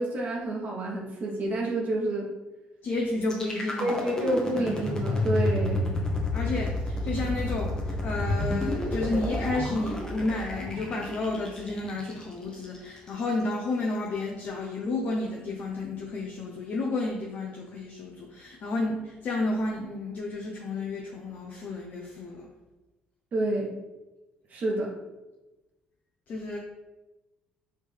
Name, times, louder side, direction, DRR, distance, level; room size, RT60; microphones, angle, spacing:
voice 1, 0.0-2.3 3.8-5.9 23.3-23.7 24.5-24.9, right 1 dB, 45° right, -2 dB, 1.1 m, -28 dB
voice 2, 2.8-4.0 6.3-22.5 26.3-26.6, left 2 dB, 50° left, -1 dB, 0.7 m, -31 dB
sound 1, 3.2-13.2, left 1 dB, 20° left, 1.1 m, -30 dB
4.0 x 3.4 x 3.4 m, 1.1 s
cardioid pair, 95°, 4 cm